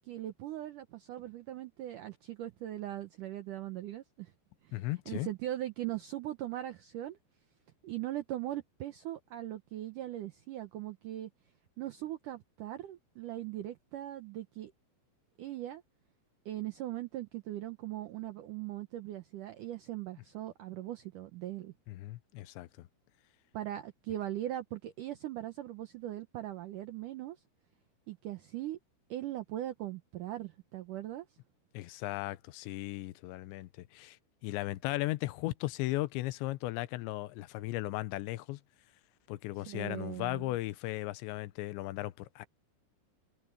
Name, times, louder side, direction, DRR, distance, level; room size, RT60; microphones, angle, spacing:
voice 1, 0.0-4.3 4.6-7.2 7.8-11.3 11.8-14.7 15.4-15.8 16.5-21.7 23.5-27.4 28.1-28.8 29.1-31.3 39.6-40.6, right 13 dB, 85° right, 1.8 m, -40 dB
voice 2, 4.7-5.3 21.9-22.9 31.7-34.2 34.4-38.6 39.3-42.5, left 18 dB, 85° left, 3.1 m, -36 dB
omnidirectional pair, 5.1 m